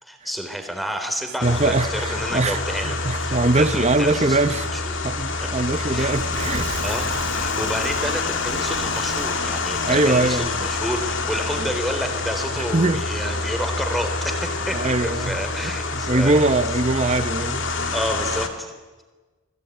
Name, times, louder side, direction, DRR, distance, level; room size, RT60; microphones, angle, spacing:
voice 1, 0.0-4.4 4.7-4.9 5.4-5.5 5.8-6.2 6.8-16.7 17.9-18.7, equal, ahead, 3.6 m, -30 dB
sound 1, 1.4-18.5, left 3 dB, 55° left, 2.4 m, -27 dB
voice 2, 1.4-4.7 5.0-6.8 9.9-10.6 11.6-11.7 12.6-13.0 14.7-15.4 15.6-17.7, right 2 dB, 30° right, 0.9 m, -22 dB
Fire / Explosion, 5.9-10.8, right 2 dB, 55° right, 2.2 m, -37 dB
29.5 x 21.0 x 9.3 m
head